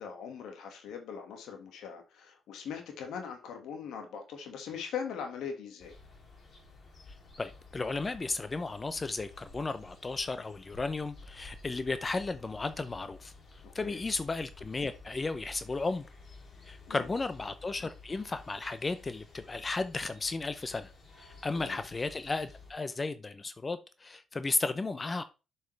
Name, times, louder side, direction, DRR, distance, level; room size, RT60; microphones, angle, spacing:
voice 1, 0.0-5.9 13.6-14.0 16.9-17.1 21.5-21.8, left 7 dB, 80° left, 1.8 m, -41 dB
sound 1, 5.8-22.7, left 3 dB, 50° left, 2.7 m, -53 dB
voice 2, 7.4-13.3 13.7-16.1 16.7-20.9 21.2-25.2, left 3 dB, 25° left, 0.6 m, -34 dB
7.6 x 5.5 x 3.3 m
cardioid pair, 90°, 0 cm